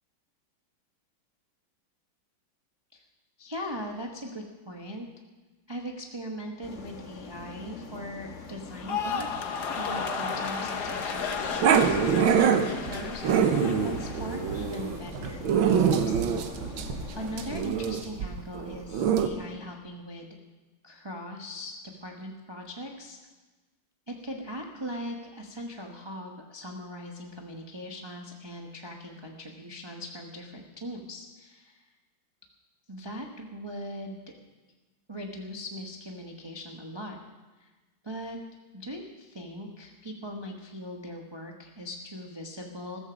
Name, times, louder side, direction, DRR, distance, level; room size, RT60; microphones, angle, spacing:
voice 1, 3.4-5.1 5.7-16.3 17.1-20.3 20.8-23.2 24.1-31.9 32.9-34.3 35.1-37.2 37.6-37.7 38.0-38.4 38.7-43.0, equal, 20° right, 0 dB, 0.8 m, -40 dB
sound 1, 6.6-17.6, left 4 dB, 40° left, 1.4 m, -43 dB
sound 2, 8.7-15.0 15.3-15.8, left 5 dB, 55° left, 1.5 m, -34 dB
Growling, 11.6-19.3, right 7 dB, 75° right, 1.7 m, -25 dB
14.5 x 14.0 x 5.1 m, 1.2 s
omnidirectional pair, 2.3 m